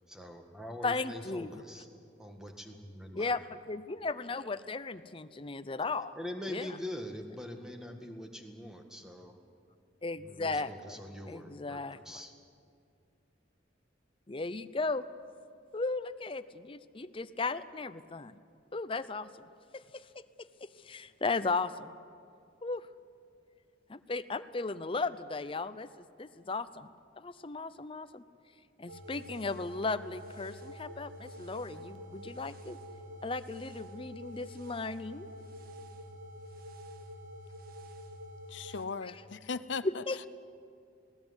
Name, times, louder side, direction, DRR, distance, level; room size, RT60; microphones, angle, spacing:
voice 1, 0.1-1.9 2.2-3.3 6.1-9.4 10.2-12.3, left 1 dB, 5° right, 4 dB, 1.8 m, -43 dB
voice 2, 0.8-1.5 3.2-6.1 6.5-6.7 10.0-11.0 11.3-12.0 14.3-15.1 15.7-18.4 18.7-20.0 20.4-21.9 22.6-22.9 23.9-26.9 27.2-28.2 28.8-32.8 33.2-35.3 39.0-39.1 39.8-40.3, left 3 dB, 30° left, 13 dB, 0.6 m, -36 dB
sound 1, 28.9-38.8, equal, 50° right, 1.4 m, -47 dB
voice 3, 38.5-40.0, left 5 dB, 75° left, 14 dB, 0.6 m, -38 dB
19.5 x 17.5 x 9.7 m, 2.4 s
head